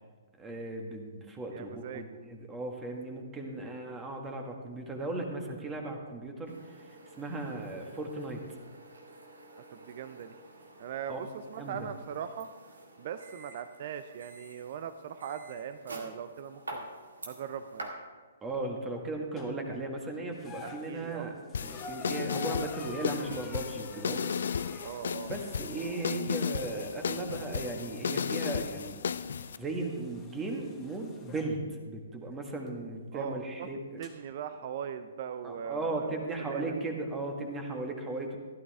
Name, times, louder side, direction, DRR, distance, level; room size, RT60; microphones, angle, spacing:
voice 1, 0.4-6.5 7.2-8.4 11.1-11.2 11.6-11.7 18.4-21.3 21.6-24.2 25.3-29.0 29.6-34.0 35.4-38.4, right 2 dB, 15° right, 2 dB, 1.7 m, -36 dB
voice 2, 1.5-2.1 7.4-7.6 9.7-10.4 10.8-12.5 13.0-16.9 17.2-17.9 20.6-21.3 24.8-25.3 33.1-33.7 34.0-36.8, right 8 dB, 45° right, 10 dB, 0.5 m, -40 dB
sound 1, 6.5-17.9, right 2 dB, 70° right, 2.1 m, -49 dB
sound 2, 19.4-19.8 20.3-31.5 32.7-32.8 34.0-34.1, left 4 dB, 15° left, 1.4 m, -48 dB
sound 3, 21.5-29.6, left 7 dB, 60° left, 0.4 m, -34 dB
15.0 x 12.5 x 3.5 m, 1.4 s
figure-of-eight pair, 125°, 0 cm